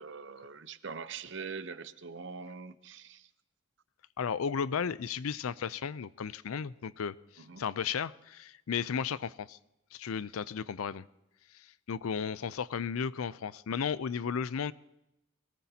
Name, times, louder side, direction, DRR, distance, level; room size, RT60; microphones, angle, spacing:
voice 1, 0.0-3.3 7.4-7.6, right 5 dB, 60° right, 0.7 m, -43 dB
voice 2, 4.2-9.6 9.9-11.0 11.5-14.7, left 6 dB, 85° left, 0.5 m, -34 dB
22.5 x 18.0 x 2.8 m
head